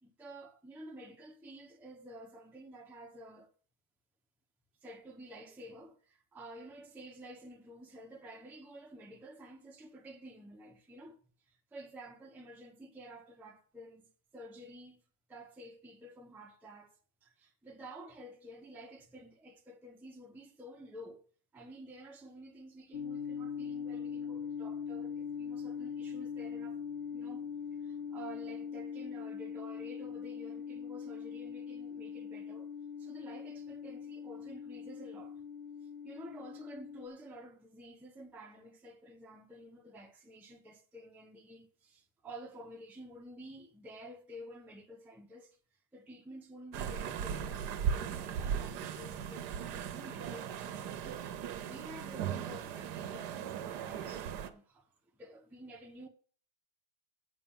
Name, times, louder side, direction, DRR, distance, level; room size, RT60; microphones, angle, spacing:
voice 1, 0.0-3.5 4.8-11.2 11.5-15.0 15.3-21.2 21.5-26.8 27.1-27.5 27.8-32.7 33.0-35.4 36.0-45.6 45.9-56.1, right 1 dB, ahead, 0.7 m, -51 dB
sound 1, 22.9-37.1, left 7 dB, 85° left, 0.4 m, -41 dB
sound 2, 46.7-54.5, right 8 dB, 75° right, 1.3 m, -38 dB
7.3 x 5.7 x 7.2 m
omnidirectional pair, 1.8 m